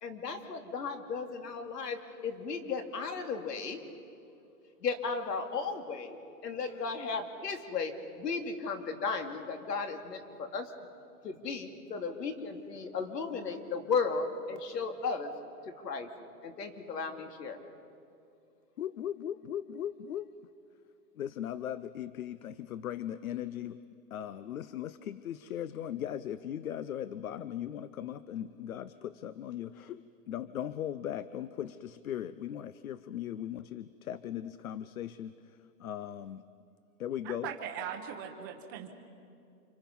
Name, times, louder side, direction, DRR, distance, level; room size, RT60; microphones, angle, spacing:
voice 1, 0.0-3.8 4.8-6.2 6.4-7.9 8.2-10.7 11.2-15.3 15.6-16.1 16.4-17.6, left 5 dB, 80° left, 5 dB, 2.9 m, -35 dB
voice 2, 18.8-20.3 21.2-23.8 24.1-36.4 37.0-37.5, left 10 dB, 60° left, 15 dB, 0.7 m, -38 dB
voice 3, 37.2-38.9, right 8 dB, 15° right, 3 dB, 0.9 m, -40 dB
30.0 x 26.0 x 5.4 m, 2.5 s
hypercardioid pair, 180°, 48 cm